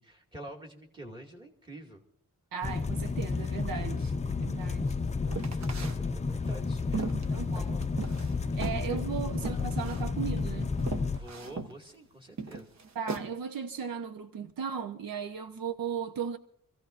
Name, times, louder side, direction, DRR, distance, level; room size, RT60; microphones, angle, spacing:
voice 1, 0.0-2.0 3.6-4.1 5.3-7.9 8.5-8.6 8.9-9.0 11.1-12.7, right 1 dB, 15° right, 2.3 m, -48 dB
voice 2, 2.5-4.9 7.1-7.8 8.6-10.7 12.9-16.4, right 7 dB, 80° right, 1.1 m, -36 dB
sound 1, 2.6-11.2, left 4 dB, 20° left, 0.5 m, -31 dB
sound 2, 5.3-6.0 6.4-8.3 8.6-8.8 9.4-10.1 10.4-10.5 10.8-11.7 12.4-13.3, right 4 dB, 50° right, 1.1 m, -37 dB
27.0 x 15.5 x 2.6 m
wide cardioid pair, 145°, 34 cm